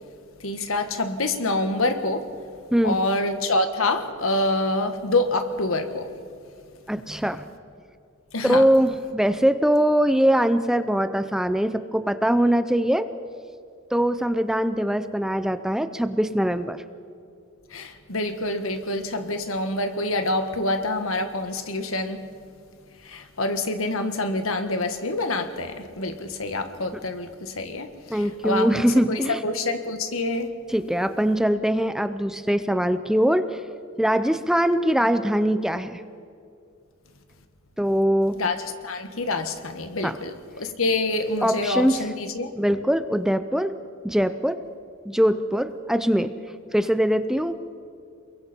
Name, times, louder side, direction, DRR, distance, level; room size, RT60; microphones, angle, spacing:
voice 1, 0.4-2.3 2.8-6.1 8.3-8.6 17.7-22.2 23.1-28.8 29.1-30.5 38.4-42.5, left 2 dB, 75° left, 7 dB, 1.7 m, -26 dB
voice 2, 2.7-3.0 6.9-7.5 8.4-13.1 13.9-16.8 28.1-29.4 30.7-33.6 34.0-36.0 37.8-38.4 40.0-40.2 41.4-42.0 42.6-43.8 44.0-44.6 45.1-46.3 46.7-47.7, equal, ahead, 11 dB, 0.5 m, -22 dB
28.5 x 22.5 x 4.5 m, 2.4 s
head